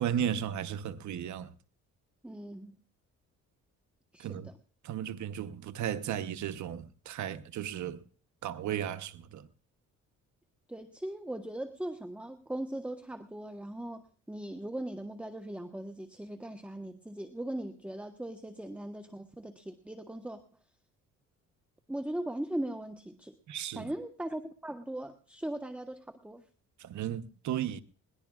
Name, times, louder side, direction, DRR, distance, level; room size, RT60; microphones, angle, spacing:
voice 1, 0.0-1.5 4.2-4.5 4.8-8.0 8.4-9.5 23.5-23.9 26.8-27.8, right 10 dB, 70° right, 1.0 m, -35 dB
voice 2, 2.2-2.8 4.1-4.5 10.7-20.4 21.9-23.3 23.7-26.4, right 1 dB, 5° right, 1.2 m, -39 dB
21.5 x 18.5 x 2.4 m
cardioid pair, 90°, 30 cm